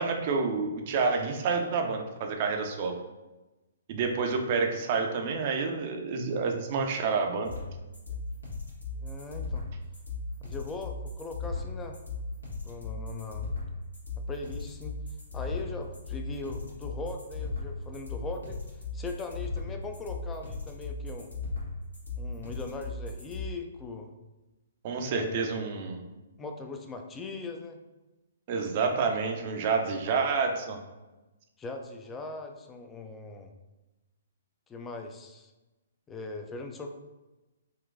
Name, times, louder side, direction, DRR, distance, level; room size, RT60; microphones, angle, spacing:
voice 1, 0.0-2.9 3.9-7.5 24.8-26.0 28.5-30.8, right 4 dB, 40° right, 3 dB, 0.5 m, -28 dB
sound 1, 7.4-23.4, left 3 dB, 90° left, 1.1 m, -36 dB
voice 2, 9.0-9.6 10.4-12.0 12.6-13.5 14.3-15.0 15.3-18.6 18.9-21.4 22.2-24.1 25.0-25.7 26.4-27.8 31.6-33.5 34.7-35.5 36.1-36.9, left 3 dB, 15° left, 4 dB, 0.3 m, -40 dB
3.7 x 2.3 x 2.5 m, 1.1 s
figure-of-eight pair, 125°, 0 cm